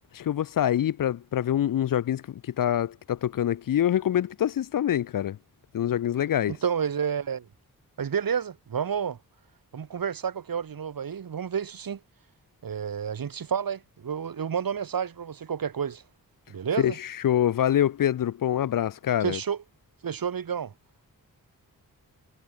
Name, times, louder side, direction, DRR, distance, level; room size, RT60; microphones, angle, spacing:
voice 1, 0.1-5.4 5.7-6.5 16.8-19.4, left 10 dB, 70° left, 0.6 m, -25 dB
voice 2, 6.5-7.5 8.0-9.2 9.7-12.0 12.6-16.0 16.5-17.0 19.2-19.6 20.0-20.7, right 7 dB, 75° right, 2.5 m, -30 dB
wide cardioid pair, 170°, 35 cm